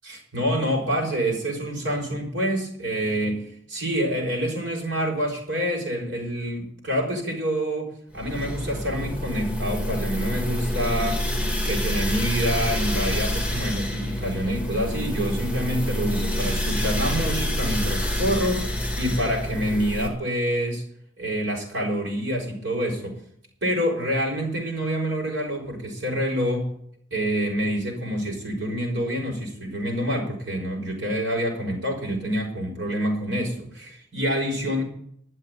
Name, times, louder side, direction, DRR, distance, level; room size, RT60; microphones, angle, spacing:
voice 1, 0.0-11.2 11.6-20.8 21.2-23.2 23.6-26.7 27.1-34.8, equal, 65° right, 0 dB, 5.5 m, -27 dB
sound 1, 8.1-20.1, left 1 dB, 5° right, 1.9 m, -27 dB
12.0 x 7.7 x 9.3 m, 0.67 s
head